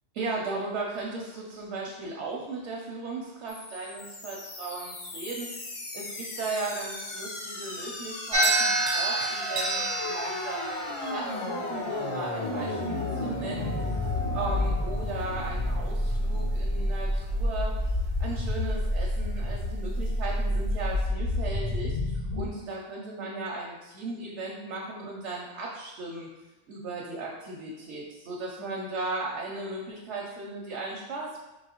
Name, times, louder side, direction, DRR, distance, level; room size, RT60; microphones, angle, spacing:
voice 1, 0.1-5.7 5.9-14.0 14.3-17.8 18.2-26.3 26.7-31.4, right 3 dB, 90° right, -2 dB, 0.9 m, -36 dB
sound 1, 3.5-22.5, left 1 dB, 50° left, 0.4 m, -31 dB
sound 2, 8.3-16.7, right 2 dB, 40° right, 0.5 m, -31 dB
4.6 x 2.8 x 2.9 m, 1.0 s
omnidirectional pair, 1.2 m